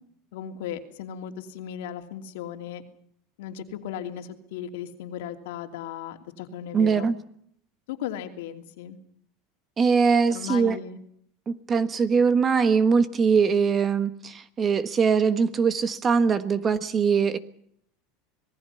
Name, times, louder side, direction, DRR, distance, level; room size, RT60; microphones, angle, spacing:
voice 1, 0.3-2.8 3.4-7.1 7.9-9.0 10.3-11.0, left 9 dB, 80° left, 6 dB, 2.9 m, -36 dB
voice 2, 6.7-7.1 9.8-10.8 11.5-17.4, right 5 dB, 20° right, 13 dB, 1.3 m, -22 dB
26.5 x 19.5 x 5.7 m, 0.67 s
supercardioid pair, 150°, 0 cm